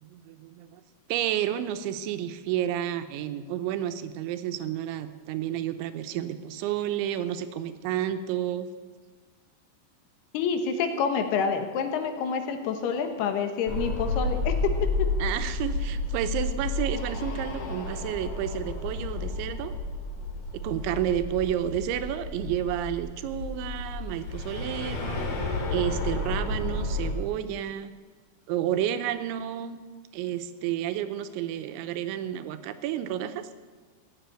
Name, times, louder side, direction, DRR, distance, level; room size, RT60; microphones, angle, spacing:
voice 1, 0.0-0.8 1.1-8.7 15.2-19.7 20.6-27.9 28.5-29.8 30.1-33.5, right 11 dB, 90° right, 10 dB, 3.1 m, -31 dB
voice 2, 10.3-14.5, left 6 dB, 70° left, 6 dB, 3.0 m, -28 dB
sound 1, 13.7-27.1, left 2 dB, 50° left, 2.8 m, -31 dB
16.0 x 7.6 x 9.1 m, 1.4 s
omnidirectional pair, 5.2 m